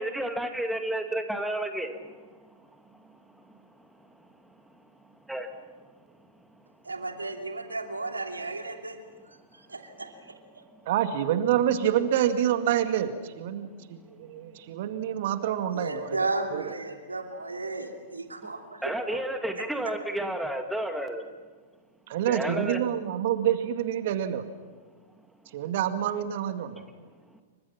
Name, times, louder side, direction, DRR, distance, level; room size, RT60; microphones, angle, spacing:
voice 1, 0.0-1.9 5.3-5.5 18.8-21.2 22.3-22.8, right 1 dB, 5° right, 5 dB, 2.4 m, -31 dB
voice 2, 6.8-9.0 9.5-10.1 15.7-19.2, right 2 dB, 90° right, 3 dB, 2.9 m, -34 dB
voice 3, 10.9-16.2 16.5-16.7 22.1-24.5 25.5-26.8, right 10 dB, 55° right, 8 dB, 2.1 m, -27 dB
28.5 x 25.0 x 5.9 m, 1.4 s
figure-of-eight pair, 105°, 0 cm